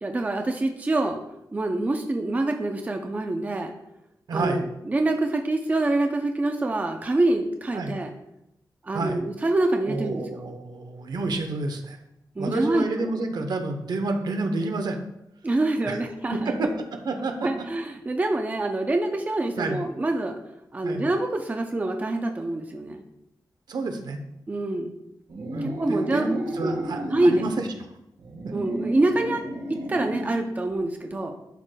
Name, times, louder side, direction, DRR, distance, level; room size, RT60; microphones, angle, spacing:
voice 1, 0.0-1.2 1.5-3.7 4.3-8.1 8.8-10.2 12.4-13.1 15.4-16.5 17.4-20.4 20.7-23.0 24.5-25.0 25.6-26.4 26.6-26.8 27.1-27.4 28.5-29.4 29.7-31.3, right 2 dB, 20° right, 4 dB, 0.5 m, -26 dB
voice 2, 4.3-4.6 7.7-7.9 8.9-9.2 9.9-12.0 12.4-15.0 15.9-16.0 16.3-16.7 17.1-17.5 19.6-19.8 20.8-21.0 23.7-24.2 25.5-27.7, right 3 dB, 65° right, 6 dB, 0.8 m, -29 dB
sound 1, 25.3-27.6 28.2-30.4, right 1 dB, 85° right, 1.7 m, -32 dB
11.5 x 4.9 x 2.2 m, 0.83 s
wide cardioid pair, 160°, 8 cm